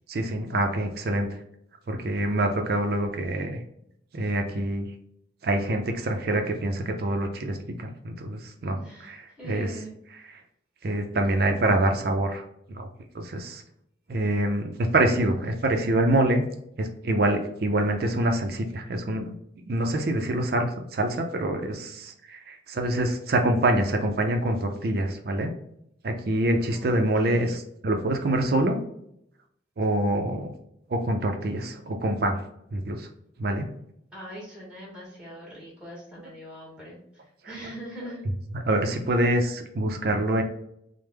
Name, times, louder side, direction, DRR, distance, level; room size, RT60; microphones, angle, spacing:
voice 1, 0.1-1.4 1.9-3.6 4.1-4.9 5.4-9.7 10.8-12.4 12.7-12.9 13.1-13.6 14.1-16.4 16.8-19.3 19.7-25.5 26.0-28.8 29.8-30.5 30.9-32.4 32.7-33.1 33.4-33.7 37.4-37.5 38.7-40.4, right 1 dB, 55° right, 4 dB, 0.4 m, -25 dB
voice 2, 8.7-9.9 26.6-27.5 34.1-38.2, equal, 5° right, -4 dB, 1.2 m, -42 dB
3.3 x 2.1 x 3.2 m, 0.75 s
head